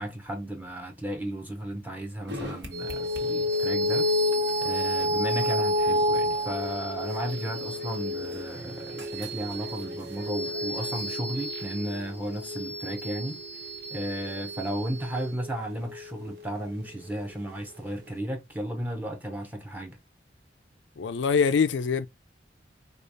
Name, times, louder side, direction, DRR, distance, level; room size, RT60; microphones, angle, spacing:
voice 1, 0.0-4.1 4.6-13.4 13.9-20.0, right 1 dB, 10° right, 0.6 m, -34 dB
sound 1, 2.3-11.2, equal, 90° right, 1.4 m, -45 dB
sound 2, 2.7-17.5, left 1 dB, 60° right, 1.1 m, -30 dB
voice 2, 21.0-22.1, left 6 dB, 90° left, 0.4 m, -24 dB
4.9 x 2.4 x 2.6 m
head